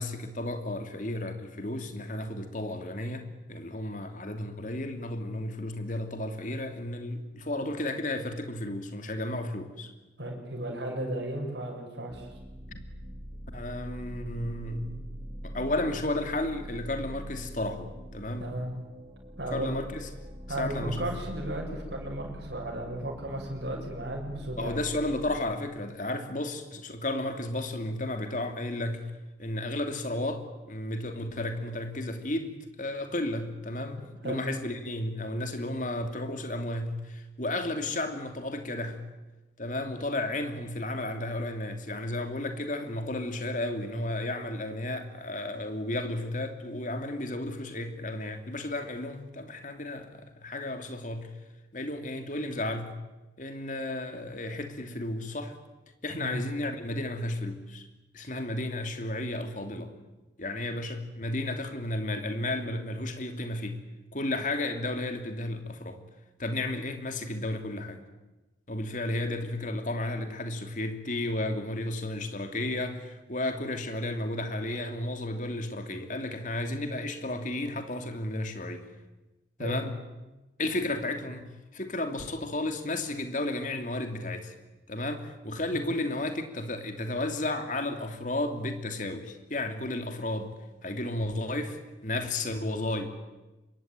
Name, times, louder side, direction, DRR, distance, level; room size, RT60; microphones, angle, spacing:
voice 1, 0.0-9.9 12.7-12.9 13.5-15.0 15.4-18.6 19.5-20.1 20.5-21.1 24.6-29.1 29.4-39.0 39.6-51.3 51.7-53.0 53.4-55.5 56.0-57.9 58.1-59.9 60.4-63.8 64.1-66.0 66.4-68.0 68.7-78.9 79.6-79.9 80.6-84.5 84.9-90.5 90.8-93.1, left 1 dB, 45° left, 6 dB, 2.9 m, -33 dB
voice 2, 10.2-12.3 18.4-18.7 19.4-19.7 20.5-24.8 34.2-34.4 56.2-56.4 79.6-79.8 85.7-85.8, right 1 dB, 70° right, -1 dB, 7.1 m, -35 dB
sound 1, 12.1-25.4, equal, 30° right, 4.8 m, -43 dB
26.5 x 23.0 x 9.2 m, 1.1 s
head